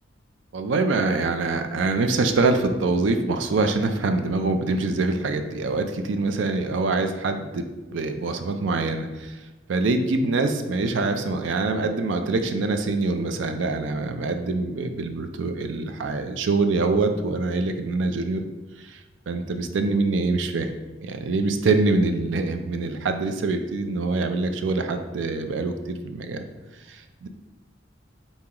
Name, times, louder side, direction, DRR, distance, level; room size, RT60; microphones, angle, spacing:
voice 1, 0.5-7.6 7.9-9.4 9.7-18.4 18.8-19.0 19.3-20.7 21.0-26.5 26.9-27.3, right 3 dB, 75° right, 7 dB, 0.4 m, -24 dB
4.1 x 2.9 x 3.6 m, 1.2 s
head